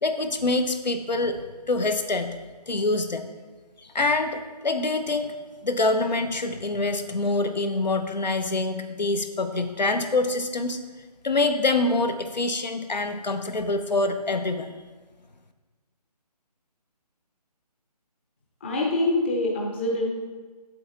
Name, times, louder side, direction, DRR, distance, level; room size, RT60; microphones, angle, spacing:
voice 1, 0.0-1.4 1.7-2.4 2.7-3.3 3.9-5.3 5.6-10.8 11.2-14.7, left 2 dB, 90° left, 8 dB, 1.0 m, -25 dB
voice 2, 18.6-20.1, left 2 dB, 15° left, -2 dB, 0.6 m, -25 dB
8.3 x 7.8 x 3.8 m, 1.4 s
figure-of-eight pair, 160°, 21 cm